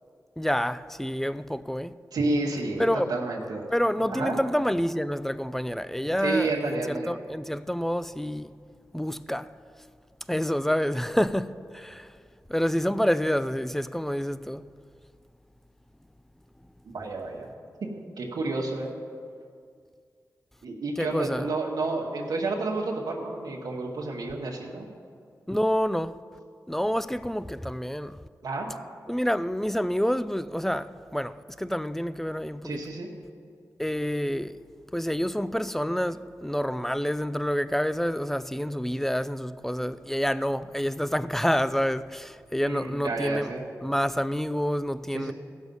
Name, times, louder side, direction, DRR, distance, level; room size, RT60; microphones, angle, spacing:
voice 1, 0.4-1.9 2.8-3.1 3.7-8.5 8.9-9.5 10.3-12.1 12.5-14.7 21.0-21.5 25.5-26.2 26.7-28.3 29.1-32.8 33.8-34.6 34.9-43.5 43.8-45.3, equal, 5° left, 0.4 m, -28 dB
voice 2, 2.1-3.7 4.1-4.4 6.2-7.1 16.9-17.5 18.2-18.9 20.6-24.9 28.4-28.7 32.6-33.1 42.6-43.6 45.1-45.3, right 3 dB, 90° right, 1.2 m, -30 dB
15.0 x 6.3 x 5.4 m
cardioid pair, 65°, 7 cm